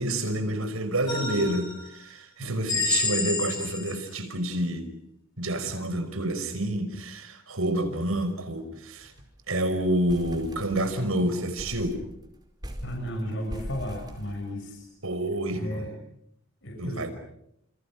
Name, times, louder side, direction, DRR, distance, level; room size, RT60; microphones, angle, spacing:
voice 1, 0.0-4.9 5.4-9.1 9.5-12.0 15.0-15.9 16.8-17.1, right 1 dB, 90° right, 5.4 m, -28 dB
sound 1, 1.1-1.9 2.7-4.1, left 3 dB, 20° left, 6.4 m, -28 dB
sound 2, 8.1-8.3 8.6-8.7 9.0-9.4 9.7-11.1 11.6-14.9, equal, 20° right, 4.6 m, -41 dB
voice 2, 12.8-14.9 15.5-15.9 16.6-17.1, equal, 60° left, 6.9 m, -34 dB
30.0 x 28.5 x 6.2 m
head